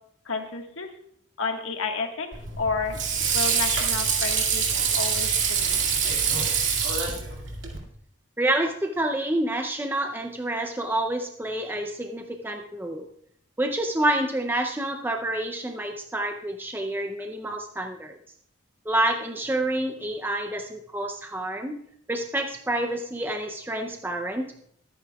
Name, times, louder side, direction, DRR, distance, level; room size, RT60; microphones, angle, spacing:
voice 1, 0.2-0.9 1.4-3.0 3.3-4.6 4.9-5.9, left 4 dB, 75° left, 3 dB, 1.6 m, -31 dB
Water / Sink (filling or washing), 2.3-7.8, right 6 dB, 65° right, 2.2 m, -25 dB
voice 2, 8.4-13.1 13.6-18.2 18.9-21.8 22.1-24.5, right 1 dB, 10° right, 4 dB, 0.5 m, -28 dB
22.5 x 9.4 x 2.3 m, 0.68 s
head